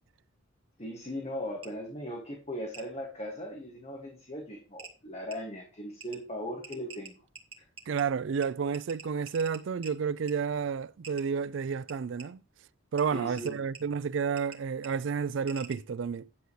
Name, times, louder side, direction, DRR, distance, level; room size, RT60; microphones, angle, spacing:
voice 1, 0.8-7.1 13.1-13.6, equal, 35° left, 2.0 m, -38 dB
sound 1, 1.6-1.7 2.7-2.9 4.2-4.3 4.8-4.9 5.3-5.4 6.0-6.2 6.6-8.0 8.4-8.5 8.7-9.9 10.3-10.4 11.0-11.2 11.9-12.3 13.0-13.1 13.4-13.8 14.4-14.6 14.8-14.9 15.5-15.8, right 5 dB, 25° right, 1.8 m, -46 dB
voice 2, 7.9-12.4 12.9-16.3, right 6 dB, 65° right, 0.4 m, -31 dB
10.5 x 7.9 x 3.2 m
head